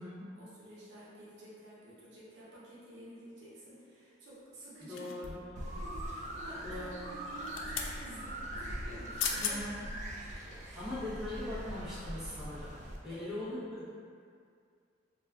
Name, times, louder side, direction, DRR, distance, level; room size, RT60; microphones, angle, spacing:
voice 1, 0.3-5.4 5.7-9.6 10.2-10.9 13.1-13.3, right 1 dB, 65° right, -9 dB, 0.8 m, -51 dB
voice 2, 4.8-5.7 6.6-7.2 9.4-9.9 10.7-12.8 13.0-13.9, left 1 dB, 5° right, -12 dB, 0.7 m, -41 dB
sound 1, 5.0-5.5 7.3-7.9 8.9-9.0 9.2-9.6 10.1-10.3, left 6 dB, 90° left, 0.3 m, -36 dB
sound 2, 5.6-13.0, right 1 dB, 40° right, 0.3 m, -42 dB
2.3 x 2.3 x 3.3 m, 2.2 s
head